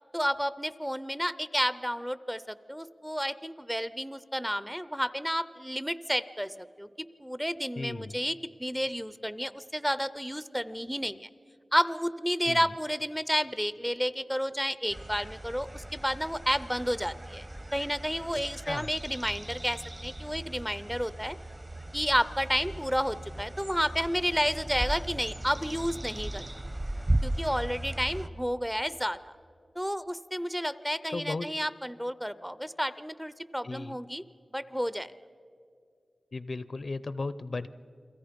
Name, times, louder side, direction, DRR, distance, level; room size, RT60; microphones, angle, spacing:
voice 1, 0.1-6.9 7.2-11.3 11.7-17.5 17.7-21.4 21.9-26.5 27.2-29.3 29.8-34.2 34.5-35.1, equal, ahead, 15 dB, 0.5 m, -31 dB
voice 2, 7.8-8.2 12.4-12.7 18.3-18.4 18.7-18.9 31.1-31.5 33.6-34.0 36.3-37.7, left 3 dB, 60° left, 15 dB, 0.6 m, -35 dB
sound 1, 14.9-28.3, right 1 dB, 25° right, 0.9 m, -37 dB
29.5 x 22.5 x 5.2 m, 2.3 s
wide cardioid pair, 100°, 0 cm